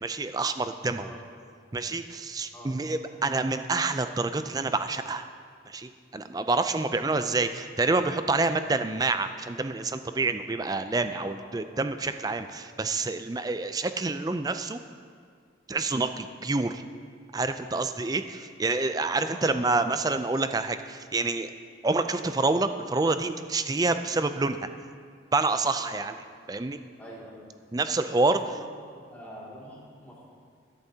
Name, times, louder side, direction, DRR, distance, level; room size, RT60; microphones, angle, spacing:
voice 1, 0.0-1.1 1.7-5.3 5.7-14.8 15.7-16.8 17.3-21.5 21.8-24.6 25.3-26.1 26.5-26.8 27.7-28.4, right 3 dB, 20° right, 9 dB, 0.4 m, -27 dB
voice 2, 2.5-3.2 11.0-11.6 19.3-19.6 25.8-26.0 27.0-27.5 28.4-28.7 28.9-30.2, equal, 10° left, -7 dB, 2.4 m, -46 dB
17.0 x 11.0 x 2.8 m, 2.1 s
head